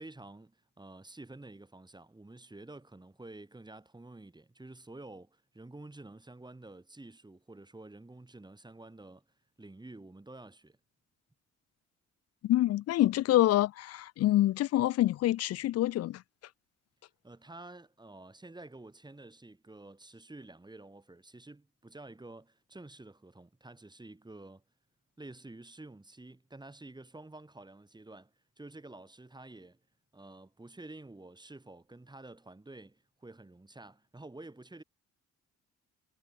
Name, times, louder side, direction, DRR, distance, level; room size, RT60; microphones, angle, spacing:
voice 1, 0.0-9.2 9.6-10.8 17.2-24.6 25.2-28.3 28.6-29.8 30.1-34.8, right 2 dB, 15° right, 8.0 m, -50 dB
voice 2, 12.4-16.2, left 14 dB, 55° left, 0.4 m, -26 dB
cardioid pair, 90°, 30 cm